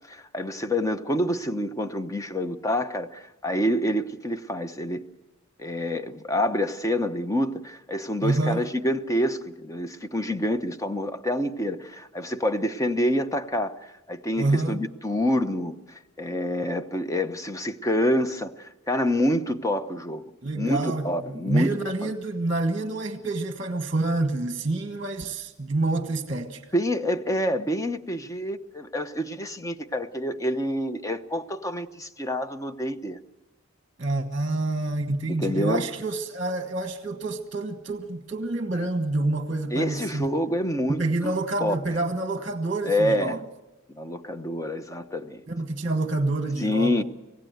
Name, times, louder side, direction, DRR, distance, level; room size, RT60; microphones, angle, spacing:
voice 1, 0.1-5.0 5.6-20.2 20.5-21.7 22.0-22.1 26.7-33.2 35.3-35.8 39.7-41.3 41.6-41.7 42.9-43.4 43.9-45.4 46.6-47.0, left 1 dB, 15° left, 0.9 m, -27 dB
voice 2, 8.2-8.7 14.4-14.8 20.4-26.6 34.0-40.3 40.9-43.4 45.5-47.0, right 2 dB, 35° right, 1.3 m, -27 dB
26.0 x 16.5 x 8.0 m
head